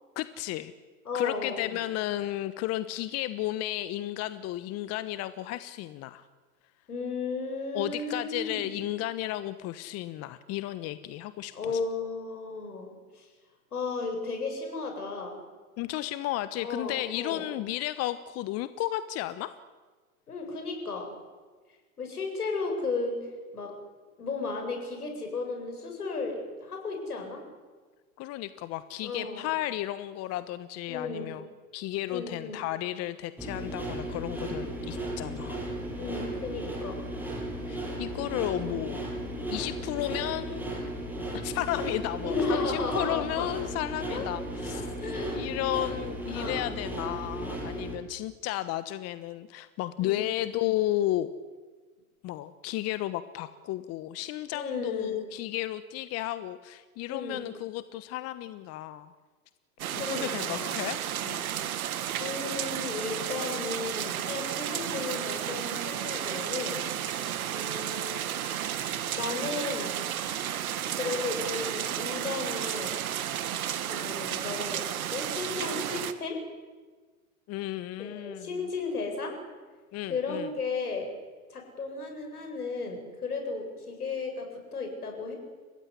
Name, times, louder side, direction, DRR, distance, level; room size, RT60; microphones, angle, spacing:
voice 1, 0.2-0.7 1.1-6.3 7.7-11.8 15.8-19.5 28.2-31.4 31.7-35.6 37.7-39.0 39.5-40.8 41.3-44.9 45.3-51.3 52.2-59.1 60.1-61.5 77.5-78.6 79.9-80.5, left 14 dB, 35° left, 13 dB, 1.1 m, -33 dB
voice 2, 1.0-1.8 6.9-8.8 11.5-13.3 13.7-15.4 16.6-17.5 20.3-21.1 22.0-23.7 24.2-27.4 29.0-29.5 30.9-31.4 32.1-32.6 36.0-37.0 38.6-39.3 42.2-43.5 44.1-44.3 45.0-45.4 46.3-46.7 50.0-50.3 54.5-55.2 57.1-57.5 59.9-60.8 62.2-66.8 67.4-68.3 69.2-70.0 71.0-73.0 73.9-76.4 78.0-79.4 80.1-81.1 81.5-85.3, left 4 dB, 85° left, 3 dB, 7.8 m, -34 dB
sound 1, 33.4-47.9, right 1 dB, 5° right, 7.9 m, -35 dB
sound 2, 59.8-76.1, right 10 dB, 70° right, 2.1 m, -33 dB
30.0 x 16.0 x 9.8 m, 1.4 s
hypercardioid pair, 110°, 44 cm